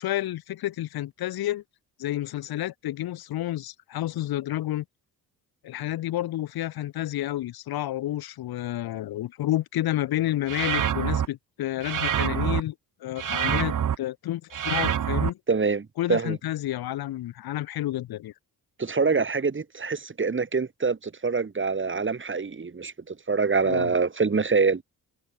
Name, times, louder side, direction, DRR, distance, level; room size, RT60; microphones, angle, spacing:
voice 1, 0.0-1.6 2.0-4.8 5.6-12.7 13.0-15.4 16.0-18.3 23.7-23.9, left 14 dB, 85° left, 3.9 m, -30 dB
sound 1, 10.5-11.3 11.8-12.6 13.2-14.0 14.5-15.3, right 9 dB, 60° right, 2.5 m, -26 dB
voice 2, 15.5-16.4 18.8-24.8, right 4 dB, 35° right, 4.0 m, -25 dB
cardioid pair, 80°, 36 cm